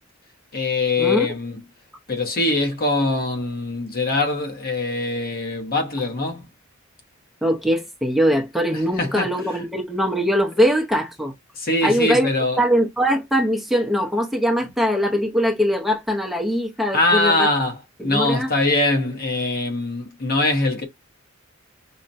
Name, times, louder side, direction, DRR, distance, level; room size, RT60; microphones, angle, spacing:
voice 1, 0.5-1.6 2.1-6.5 8.7-9.3 11.6-12.6 16.9-20.8, left 2 dB, 50° left, 0.9 m, -22 dB
voice 2, 7.4-11.3 11.8-12.3 12.6-17.5 18.0-18.5, equal, ahead, 0.6 m, -21 dB
5.6 x 2.1 x 2.5 m
head